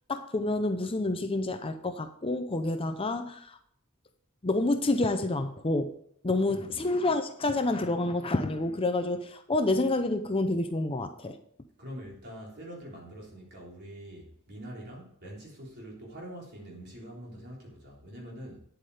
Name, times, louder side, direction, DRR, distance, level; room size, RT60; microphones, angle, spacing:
voice 1, 0.1-3.6 4.4-5.9 6.2-11.3, left 2 dB, 25° left, 8 dB, 0.6 m, -28 dB
voice 2, 11.8-18.6, equal, 45° right, -3 dB, 3.8 m, -44 dB
9.3 x 8.3 x 4.9 m, 0.66 s
head